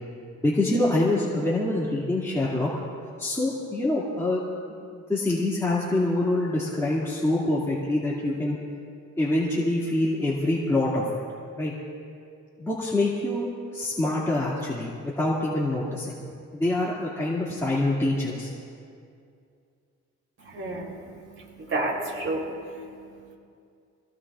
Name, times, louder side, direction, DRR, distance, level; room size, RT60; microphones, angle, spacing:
voice 1, 0.4-2.7 3.2-4.4 4.9-8.6 9.2-11.2 11.6-11.7 12.6-16.2 16.5-18.5, left 2 dB, 10° left, -8 dB, 2.3 m, -25 dB
voice 2, 20.4-23.4, right 2 dB, 50° right, -2 dB, 3.6 m, -32 dB
26.5 x 17.5 x 2.5 m, 2.4 s
wide cardioid pair, 135°, 29 cm